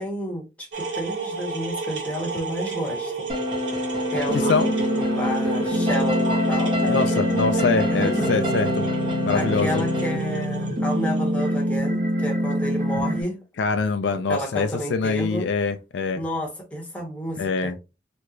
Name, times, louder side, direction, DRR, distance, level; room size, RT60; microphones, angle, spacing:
voice 1, 0.0-3.1 4.1-7.3 7.8-8.3 9.3-13.3 14.1-15.5 16.1-17.7, equal, 5° left, 1.0 m, -31 dB
sound 1, 0.7-11.8, right 4 dB, 90° right, 1.2 m, -32 dB
sound 2, 3.3-10.2, left 2 dB, 25° right, 0.9 m, -28 dB
sound 3, 4.3-13.2, equal, 45° right, 1.0 m, -25 dB
voice 2, 6.9-8.9 9.2-9.8 13.6-16.2 17.4-17.7, left 4 dB, 70° left, 0.4 m, -24 dB
3.3 x 2.9 x 2.4 m
head